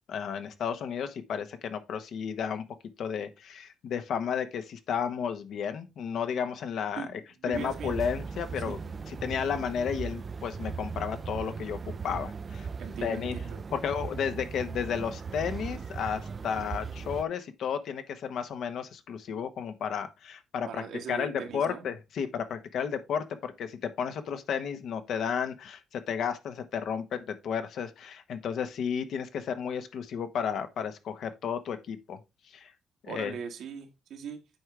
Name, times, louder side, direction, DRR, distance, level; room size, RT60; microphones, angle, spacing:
voice 1, 0.1-2.6 3.0-8.8 9.1-12.7 13.0-13.4 13.7-20.8 21.1-32.2 32.5-32.7 33.0-33.3, left 7 dB, 70° left, 1.0 m, -33 dB
voice 2, 6.9-8.0 8.6-8.8 12.8-13.6 20.7-21.8 33.0-34.4, right 7 dB, 75° right, 1.5 m, -40 dB
sound 1, 7.5-17.2, right 5 dB, 35° right, 0.4 m, -38 dB
8.6 x 4.8 x 3.3 m
cardioid pair, 90°, 0 cm